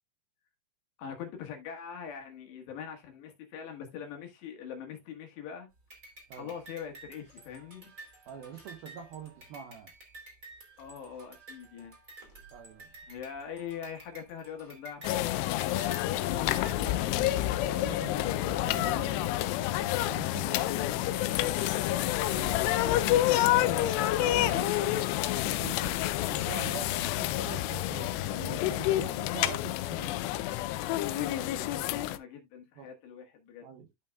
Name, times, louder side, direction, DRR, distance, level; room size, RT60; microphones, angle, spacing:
voice 1, 1.0-5.7 6.4-7.9 10.8-11.9 13.1-15.9 31.1-33.7, left 7 dB, 70° left, 3.3 m, -43 dB
sound 1, 5.9-16.9, right 2 dB, 25° right, 2.1 m, -51 dB
voice 2, 8.3-9.9 12.5-12.9 16.1-19.3 19.8-21.8 22.1-25.0 25.3-30.2 32.8-32.9 33.6-33.9, right 8 dB, 85° right, 2.1 m, -45 dB
sound 2, 15.0-32.2, left 14 dB, 85° left, 2.4 m, -28 dB
13.0 x 5.6 x 2.3 m
omnidirectional pair, 5.5 m